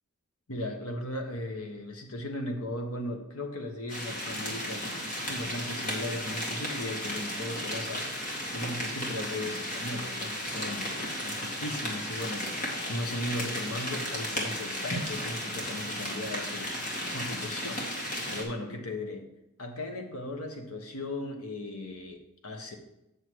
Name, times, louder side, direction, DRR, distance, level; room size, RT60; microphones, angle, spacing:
voice 1, 0.5-4.8 5.2-8.3 8.5-10.9 11.1-19.2 19.6-22.8, left 1 dB, 80° left, 4 dB, 1.4 m, -37 dB
sound 1, 3.9-18.4, equal, 35° left, 2.2 m, -34 dB
8.3 x 6.6 x 4.7 m, 0.88 s
head